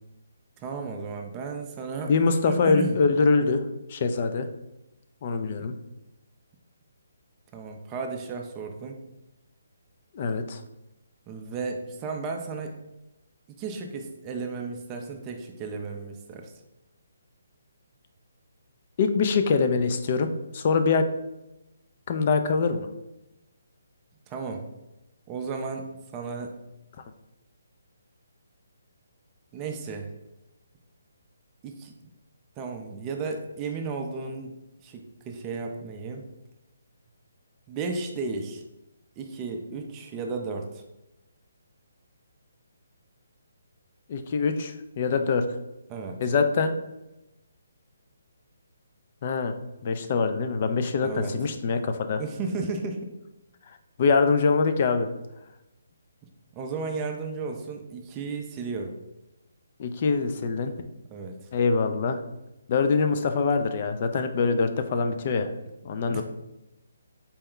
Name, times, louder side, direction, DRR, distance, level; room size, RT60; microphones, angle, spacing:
voice 1, 0.6-3.0 5.6-5.7 7.5-9.0 11.3-12.8 13.6-16.5 24.3-24.6 25.3-25.9 26.1-26.6 29.5-30.1 31.6-31.9 32.6-34.5 34.8-36.2 37.7-38.6 39.2-40.8 45.9-46.2 51.0-51.3 52.2-53.1 56.5-59.0 61.1-61.5 66.1-66.2, right 4 dB, 20° right, 3 dB, 0.4 m, -34 dB
voice 2, 2.1-4.5 5.2-5.7 10.1-10.6 19.0-21.1 22.1-22.9 44.1-45.4 46.2-46.7 49.2-49.5 49.8-52.2 54.0-55.1 59.8-60.7 61.5-62.2 62.7-65.5 65.8-66.2, left 4 dB, 40° left, 8 dB, 0.4 m, -24 dB
4.2 x 2.2 x 3.7 m, 0.94 s
hypercardioid pair, 155°, 0 cm